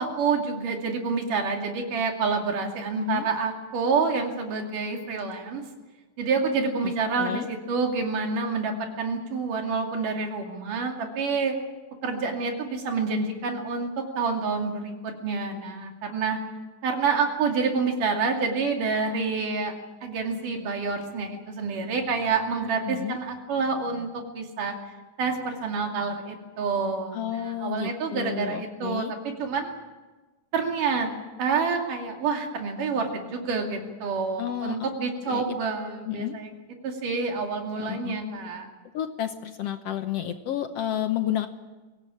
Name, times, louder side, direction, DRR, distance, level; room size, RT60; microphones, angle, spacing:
voice 1, 0.0-5.6 6.2-11.6 12.0-16.4 16.8-19.7 20.0-24.7 25.2-29.1 29.4-29.7 30.5-31.1 31.4-36.5 36.8-38.7, right 4 dB, 90° right, 3 dB, 4.2 m, -28 dB
voice 2, 3.0-3.3 6.8-6.9 7.2-7.5 22.8-23.2 27.1-29.1 34.4-34.8 35.3-35.6 36.1-36.4 37.8-38.2 38.9-41.5, left 11 dB, 70° left, 8 dB, 1.6 m, -31 dB
23.5 x 17.0 x 8.7 m, 1.2 s
omnidirectional pair, 3.6 m